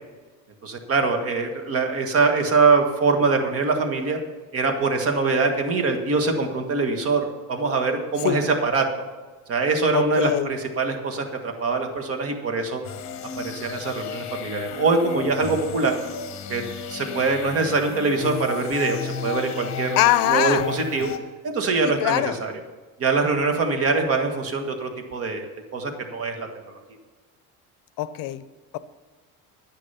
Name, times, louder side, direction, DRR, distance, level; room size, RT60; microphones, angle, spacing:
voice 1, 0.6-4.2 4.5-8.9 9.5-12.8 13.4-15.9 16.5-16.6 16.9-20.0 20.3-21.1 21.4-22.5 23.0-26.8, right 4 dB, 40° right, 5 dB, 1.7 m, -23 dB
voice 2, 9.9-10.5 20.0-20.7 22.0-22.4 28.0-28.4, left 14 dB, 70° left, 14 dB, 0.7 m, -22 dB
sound 1, 12.8-21.2, left 6 dB, 50° left, 1.4 m, -33 dB
10.0 x 10.0 x 5.7 m, 1.4 s
cardioid pair, 150°, 35 cm